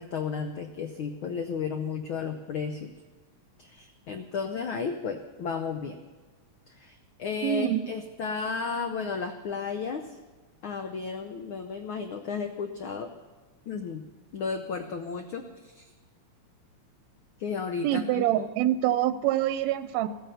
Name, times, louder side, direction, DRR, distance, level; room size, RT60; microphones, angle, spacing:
voice 1, 0.0-2.9 3.6-6.0 6.7-10.2 10.6-13.1 13.7-14.0 14.3-15.9 17.4-18.5, left 5 dB, 85° left, 6 dB, 1.1 m, -33 dB
voice 2, 7.4-7.9 17.8-20.1, right 12 dB, 75° right, 12 dB, 1.8 m, -25 dB
14.5 x 14.5 x 5.7 m, 1.4 s
omnidirectional pair, 3.4 m